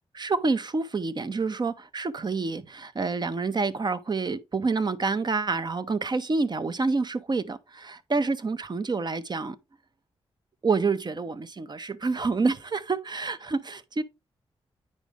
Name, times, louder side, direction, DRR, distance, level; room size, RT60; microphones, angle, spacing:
voice 1, 0.1-9.6 10.6-14.0, right 4 dB, 40° right, 0.9 m, -28 dB
8.8 x 5.2 x 3.5 m
cardioid pair, 55°, 11 cm